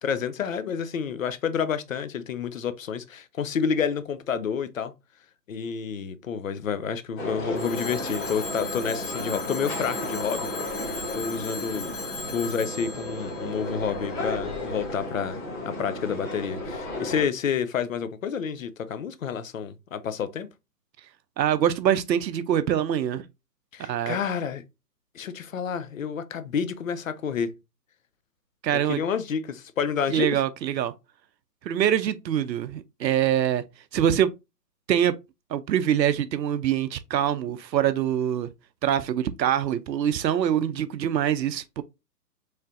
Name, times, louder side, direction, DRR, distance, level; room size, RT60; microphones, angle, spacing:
voice 1, 0.0-4.9 5.5-10.9 11.1-11.9 12.3-20.5 23.7-24.6 25.1-27.5 28.9-30.4, left 7 dB, 55° left, 0.6 m, -29 dB
sound 1, 7.2-17.2, left 1 dB, 15° left, 1.0 m, -33 dB
Telephone, 7.6-14.4, left 4 dB, 35° left, 1.8 m, -38 dB
voice 2, 21.4-23.3 23.8-24.2 28.6-29.0 30.1-30.9 31.7-33.6 33.9-34.3 34.9-35.2 35.5-38.5 38.8-41.8, right 10 dB, 90° right, 0.6 m, -24 dB
4.3 x 3.2 x 2.4 m
hypercardioid pair, 155°, 49 cm